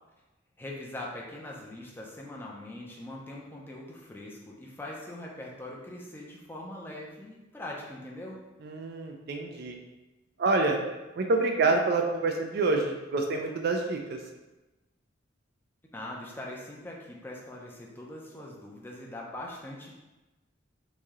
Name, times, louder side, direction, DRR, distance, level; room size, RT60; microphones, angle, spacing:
voice 1, 0.6-8.4 15.9-19.9, left 1 dB, 10° left, -3 dB, 0.5 m, -42 dB
voice 2, 8.6-9.8 10.4-10.8 11.1-14.2, right 3 dB, 50° right, 3 dB, 0.4 m, -27 dB
3.1 x 2.7 x 3.5 m, 1.1 s
head